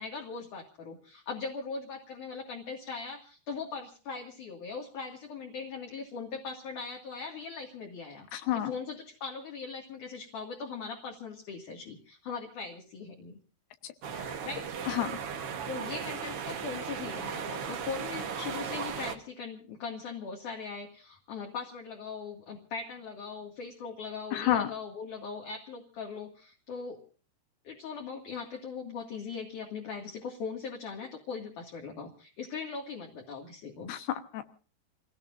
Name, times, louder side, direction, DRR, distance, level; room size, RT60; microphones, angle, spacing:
voice 1, 0.0-8.3 8.5-13.4 14.4-14.7 15.7-27.0 27.6-33.9, left 5 dB, 55° left, 0 dB, 3.2 m, -40 dB
voice 2, 8.3-8.7 13.8-14.4 14.9-15.1 24.3-24.7 33.9-34.4, left 12 dB, 75° left, 10 dB, 3.2 m, -31 dB
sound 1, 14.0-19.2, right 6 dB, 80° right, 1.3 m, -36 dB
29.0 x 17.5 x 2.6 m, 0.39 s
omnidirectional pair, 4.8 m